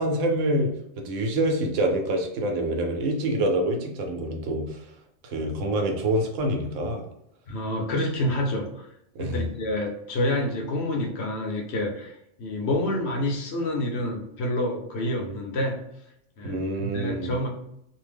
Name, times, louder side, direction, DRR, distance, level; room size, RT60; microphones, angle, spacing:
voice 1, 0.0-4.8 5.2-7.0 9.1-9.5 16.4-17.3, right 1 dB, 85° right, 3 dB, 1.0 m, -26 dB
voice 2, 7.5-8.9 9.2-15.8 16.4-17.5, left 1 dB, 65° left, 1 dB, 0.9 m, -28 dB
2.6 x 2.1 x 3.4 m, 0.79 s
omnidirectional pair, 1.3 m